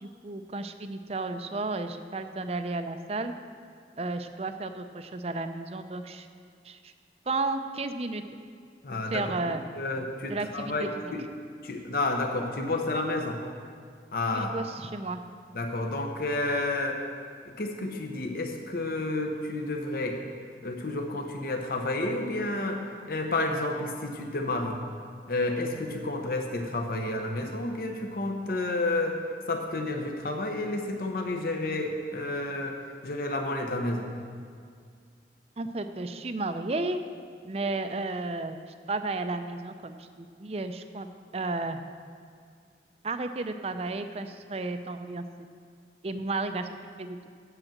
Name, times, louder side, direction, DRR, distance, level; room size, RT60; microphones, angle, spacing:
voice 1, 0.0-3.3 4.0-6.3 6.6-6.9 7.3-8.2 8.9-9.6 10.3-10.9 14.3-15.2 35.6-37.0 37.5-38.6 38.9-41.1 41.3-41.8 43.0-45.2 46.0-46.7 47.0-47.2, right 3 dB, 35° right, 8 dB, 0.5 m, -33 dB
voice 2, 8.8-11.3 11.6-13.4 14.1-14.5 15.5-17.0 17.4-20.2 20.6-22.8 23.1-24.8 25.3-29.2 29.5-32.8 33.0-34.1, left 2 dB, 55° left, 3 dB, 0.8 m, -30 dB
7.9 x 7.5 x 7.3 m, 2.2 s
head